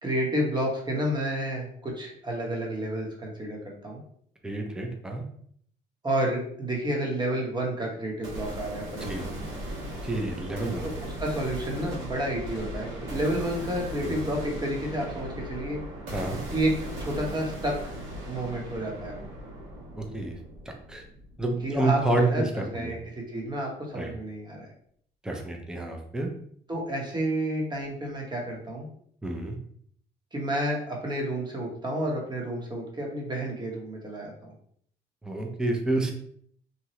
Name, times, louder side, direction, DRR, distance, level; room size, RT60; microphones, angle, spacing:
voice 1, 0.0-4.0 6.0-9.5 10.8-15.8 16.5-16.7 17.0-17.9 18.3-19.3 21.6-24.7 26.7-28.9 30.3-34.3, right 1 dB, 20° right, -1 dB, 1.0 m, -30 dB
voice 2, 4.4-5.2 9.1-9.3 10.0-10.9 14.0-14.1 16.1-16.4 20.0-20.4 20.9-21.0 21.4-22.2 22.5-23.0 24.0-24.1 25.2-26.3 29.2-29.6 35.2-36.1, right 1 dB, 5° right, 2 dB, 0.5 m, -29 dB
sound 1, 8.2-22.2, equal, 80° right, 1.3 m, -38 dB
2.8 x 2.2 x 3.0 m, 0.63 s
cardioid pair, 90°, 20 cm